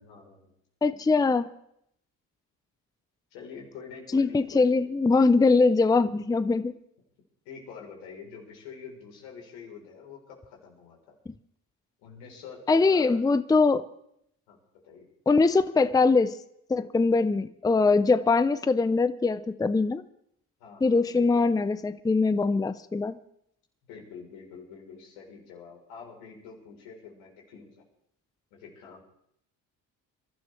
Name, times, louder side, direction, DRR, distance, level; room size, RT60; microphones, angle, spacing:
voice 1, 0.0-0.5 3.3-4.8 7.5-11.1 12.0-13.2 14.5-14.6 14.8-15.1 20.6-21.4 23.9-27.7 28.5-29.0, left 6 dB, 90° left, 0 dB, 3.9 m, -46 dB
voice 2, 0.8-1.5 4.1-6.7 12.7-13.9 15.3-16.3 16.7-20.0 20.8-23.2, left 3 dB, 10° left, 14 dB, 0.5 m, -22 dB
25.5 x 12.0 x 3.3 m, 0.72 s
supercardioid pair, 70°, 40 cm